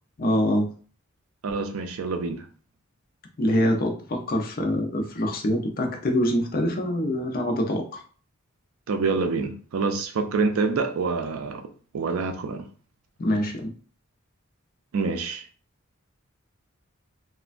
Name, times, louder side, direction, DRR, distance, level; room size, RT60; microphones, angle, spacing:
voice 1, 0.2-0.7 3.4-8.0 13.2-13.7, left 1 dB, 45° left, 0.5 m, -25 dB
voice 2, 1.4-2.4 8.9-11.7 11.9-12.7 14.9-15.4, right 4 dB, 80° right, 0.4 m, -26 dB
3.1 x 2.2 x 2.4 m
head